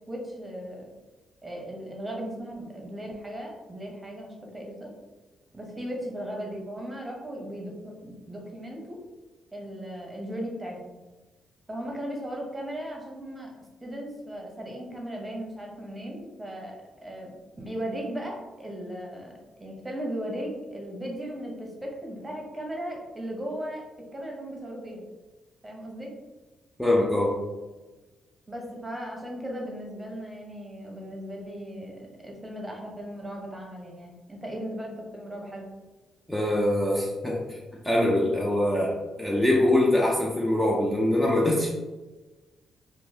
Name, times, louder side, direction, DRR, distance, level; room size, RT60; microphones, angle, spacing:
voice 1, 0.1-0.8 1.4-4.9 5.5-9.0 9.5-11.0 11.7-13.5 13.8-16.8 17.0-17.3 17.6-23.8 24.1-25.0 25.6-26.1 28.5-35.7, equal, 20° right, 0 dB, 0.9 m, -37 dB
voice 2, 26.8-27.4 36.3-37.6 37.8-41.7, left 1 dB, 5° left, -4 dB, 0.6 m, -23 dB
3.0 x 2.6 x 2.7 m, 1.2 s
supercardioid pair, 60°, 0 cm